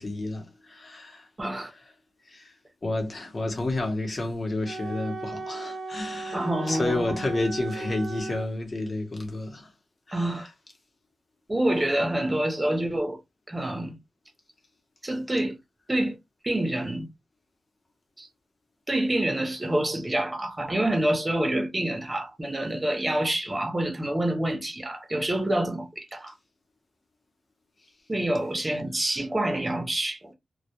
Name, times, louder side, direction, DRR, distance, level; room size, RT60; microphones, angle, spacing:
voice 1, 0.0-1.3 2.3-2.5 2.8-9.7 10.1-10.4, left 2 dB, 35° left, 0.7 m, -30 dB
voice 2, 1.4-1.7 6.3-7.2 10.1-10.5 11.5-13.2 13.5-14.0 15.0-15.6 15.9-16.2 16.4-17.1 18.2-18.3 18.9-26.3 28.1-30.3, right 1 dB, 20° right, 0.6 m, -27 dB
Wind instrument woodwind instrument, 4.6-8.5, right 3 dB, 80° right, 0.5 m, -36 dB
2.1 x 2.1 x 2.8 m
wide cardioid pair, 105°, 0 cm